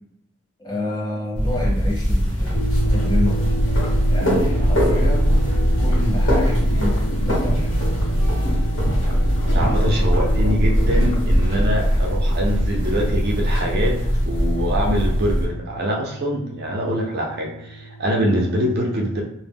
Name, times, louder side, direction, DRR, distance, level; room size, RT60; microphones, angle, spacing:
voice 1, 0.6-3.4 4.1-5.4 5.8-7.8, left 1 dB, 20° left, -5 dB, 0.7 m, -29 dB
sound 1, 1.4-15.4, equal, 85° left, 1.0 m, -20 dB
sound 2, 2.5-18.4, right 2 dB, 40° left, 0.4 m, -32 dB
sound 3, 3.3-11.6, equal, 65° left, 1.2 m, -31 dB
voice 2, 9.5-14.0 14.2-19.2, equal, 55° right, -1 dB, 0.5 m, -24 dB
2.1 x 2.0 x 3.4 m, 0.82 s
head